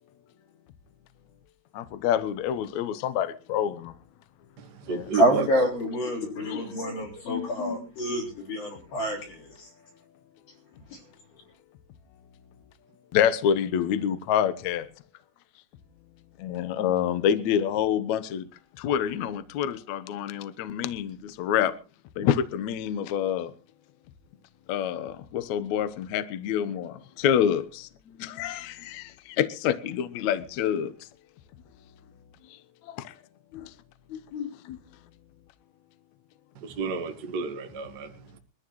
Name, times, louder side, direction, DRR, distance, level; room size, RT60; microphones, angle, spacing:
voice 1, 1.7-3.9 4.9-5.0 6.1-6.6 7.3-7.5 13.1-14.9 16.4-18.5 18.8-21.7 22.2-23.5 24.7-27.9 28.2-30.9 33.0-33.1 33.5-33.6 34.1-34.8, left 9 dB, 85° left, 1.6 m, -27 dB
voice 2, 4.6-5.5 36.5-38.4, right 6 dB, 65° right, 1.0 m, -32 dB
voice 3, 5.1-9.7 10.9-11.0, right 1 dB, 70° left, 6.0 m, -27 dB
23.0 x 13.5 x 3.1 m
omnidirectional pair, 4.8 m